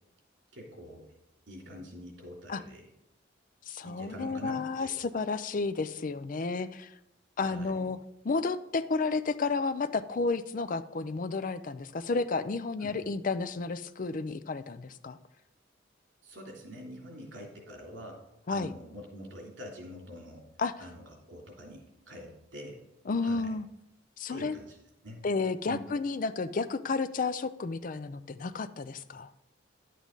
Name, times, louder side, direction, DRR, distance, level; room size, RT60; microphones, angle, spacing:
voice 1, 0.5-1.1 1.5-2.9 3.8-5.0 7.4-7.9 12.8-12.9 16.2-18.2 18.5-20.5 20.8-22.8 23.2-23.6 24.3-24.8 25.0-25.2 25.7-25.8, equal, 75° right, -1 dB, 3.1 m, -45 dB
voice 2, 3.7-7.0 7.4-8.0 8.2-15.2 18.5-18.7 20.6-20.7 23.1-23.7 24.2-24.5 25.2-29.3, left 4 dB, 45° left, 13 dB, 0.4 m, -32 dB
11.0 x 8.2 x 3.9 m, 0.87 s
head